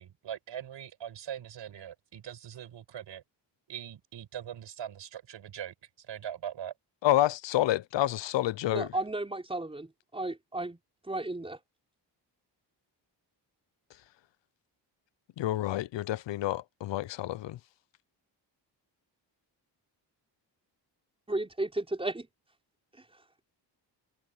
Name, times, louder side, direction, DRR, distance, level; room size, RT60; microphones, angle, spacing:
voice 1, 0.0-3.2 3.7-6.7, right 10 dB, 75° right, 5.8 m, -41 dB
voice 2, 7.0-8.9 15.4-17.6, left 14 dB, 75° left, 0.8 m, -28 dB
voice 3, 8.7-10.8 11.1-11.6 21.3-22.3, right 2 dB, 10° right, 4.6 m, -34 dB
cardioid pair, 105°, 43 cm